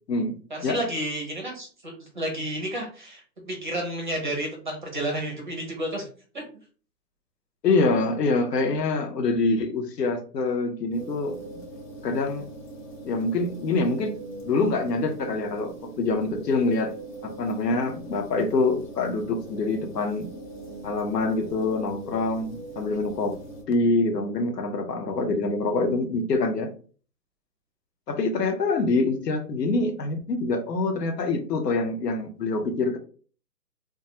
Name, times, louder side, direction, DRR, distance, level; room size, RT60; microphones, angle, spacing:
voice 1, 0.5-6.1 6.3-6.4, right 1 dB, 30° right, 1 dB, 0.5 m, -31 dB
voice 2, 7.6-11.4 12.0-12.5 13.0-14.2 14.4-16.9 17.2-20.3 20.8-23.4 23.7-26.7 28.1-33.0, left 3 dB, 75° left, 5 dB, 0.8 m, -25 dB
sound 1, 10.9-23.6, right 2 dB, 35° left, 0.8 m, -41 dB
2.3 x 2.3 x 2.8 m, 0.41 s
hypercardioid pair, 150°, 49 cm